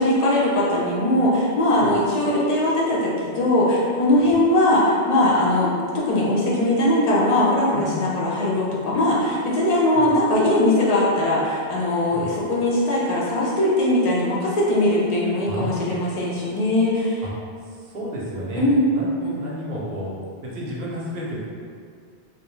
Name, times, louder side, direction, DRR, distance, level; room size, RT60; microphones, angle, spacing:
voice 1, 0.0-17.2 18.6-18.8 19.2-19.4, left 1 dB, 50° left, -6 dB, 0.5 m, -20 dB
voice 2, 7.7-8.1 9.9-10.1 12.1-12.3 15.4-16.0 17.2-17.3 17.6-19.1 19.4-20.2 20.4-21.5, equal, 75° right, -5 dB, 0.8 m, -32 dB
2.2 x 2.1 x 2.9 m, 2.2 s
omnidirectional pair, 1.1 m